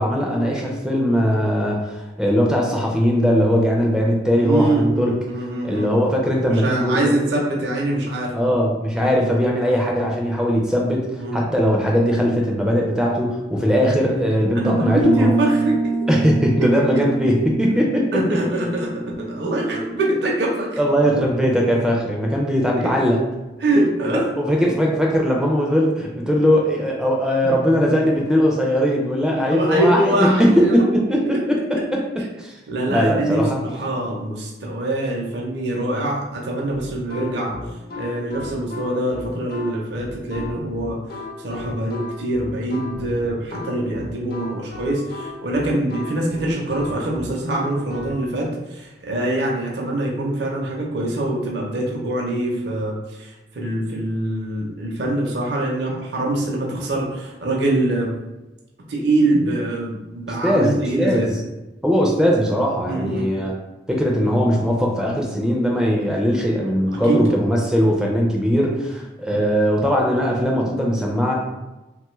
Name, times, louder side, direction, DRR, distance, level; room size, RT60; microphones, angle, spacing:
voice 1, 0.0-5.1 5.6-7.1 8.3-11.1 11.3-15.4 16.1-18.1 20.8-23.2 24.1-30.8 31.1-31.2 31.5-31.6 32.4-32.5 32.9-33.6 60.4-61.3 61.8-63.5 63.9-71.3, equal, 5° right, -1 dB, 0.3 m, -19 dB
voice 2, 4.4-5.9 6.4-8.3 9.0-9.3 11.2-11.5 13.6-13.9 14.5-16.1 16.6-16.7 16.9-17.0 18.1-20.7 22.8-22.9 23.6-24.3 27.4-27.6 29.5-30.8 31.1-31.4 31.7-31.8 32.7-37.6 38.0-41.0 41.4-58.2 58.9-61.4 62.9-63.3 67.0-67.4 67.7-67.8 69.3-69.4, right 1 dB, 65° right, -2 dB, 0.6 m, -24 dB
Piano, 15.0-23.5, right 3 dB, 85° left, 0.8 m, -29 dB
sound 1, 36.7-48.2, left 3 dB, 50° left, 0.5 m, -35 dB
3.1 x 2.3 x 3.0 m, 1.0 s
head